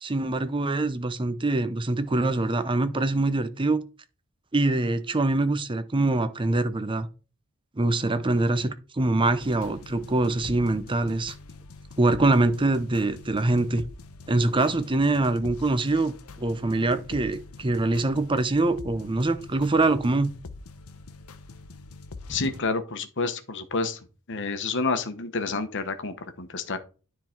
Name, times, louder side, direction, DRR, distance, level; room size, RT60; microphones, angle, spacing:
voice 1, 0.0-3.8 4.5-7.1 7.8-11.3 12.0-13.8 14.3-20.3, right 2 dB, 25° right, 0.6 m, -24 dB
sound 1, 9.4-22.6, left 3 dB, 85° left, 0.8 m, -44 dB
voice 2, 22.3-24.0 24.3-26.8, left 3 dB, 60° left, 1.0 m, -29 dB
9.9 x 3.9 x 4.4 m
head